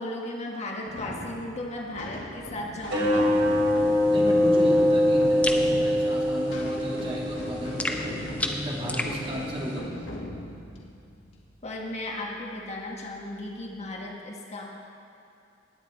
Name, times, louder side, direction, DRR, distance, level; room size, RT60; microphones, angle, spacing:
voice 1, 0.0-3.3 11.6-14.6, left 1 dB, 35° left, -1 dB, 1.3 m, -35 dB
sound 1, 0.8-12.3, equal, 85° left, 1.8 m, -40 dB
sound 2, 2.9-9.8, left 1 dB, 70° right, 2.8 m, -24 dB
voice 2, 4.0-10.1, equal, 30° right, -4 dB, 2.4 m, -34 dB
sound 3, 5.4-5.7 7.8-9.2, left 1 dB, 10° left, 0.7 m, -30 dB
19.0 x 9.0 x 4.4 m, 2.6 s
head